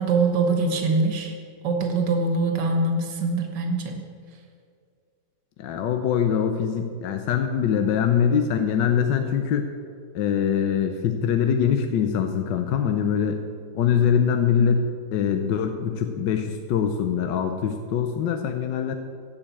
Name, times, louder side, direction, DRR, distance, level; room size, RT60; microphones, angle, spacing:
voice 1, 0.0-1.3 1.6-4.0, right 3 dB, 75° right, 3 dB, 2.0 m, -23 dB
voice 2, 5.6-9.7 10.1-13.4 13.7-19.0, left 7 dB, 80° left, 6 dB, 1.4 m, -23 dB
15.5 x 5.4 x 8.3 m, 2.2 s
omnidirectional pair, 1.9 m